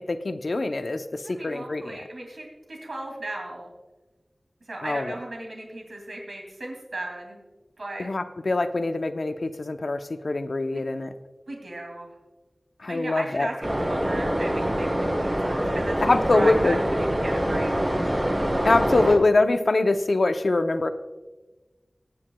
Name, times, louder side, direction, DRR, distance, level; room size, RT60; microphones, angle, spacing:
voice 1, 0.0-2.0 4.8-5.1 8.0-11.1 12.8-13.5 16.0-16.8 18.6-20.9, left 2 dB, 70° left, 8 dB, 0.7 m, -24 dB
voice 2, 1.2-3.7 4.7-7.4 7.8-8.1 10.7-10.8 11.5-12.1 12.9-16.8 17.2-17.7, right 2 dB, 80° right, 0 dB, 2.6 m, -36 dB
sound 1, 13.6-19.2, equal, 30° right, 3.7 m, -25 dB
22.0 x 9.6 x 2.3 m, 1.2 s
wide cardioid pair, 65°, 0 cm